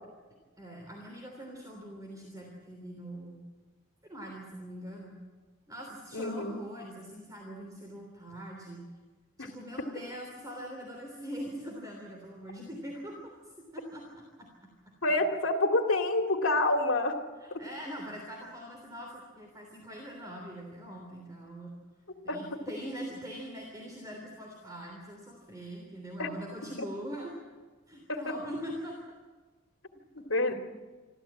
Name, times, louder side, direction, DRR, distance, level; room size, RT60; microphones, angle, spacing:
voice 1, 0.6-3.4 4.0-5.1 5.7-8.9 9.4-13.4 13.7-14.7 17.4-21.7 22.2-27.4 27.9-29.0, equal, 20° right, 0 dB, 3.3 m, -42 dB
voice 2, 6.1-6.6 9.4-9.5 15.0-17.2 22.3-22.4 26.2-26.3 28.1-28.2 30.3-30.5, left 2 dB, 80° left, 4 dB, 2.4 m, -27 dB
26.5 x 14.0 x 8.6 m, 1.4 s
head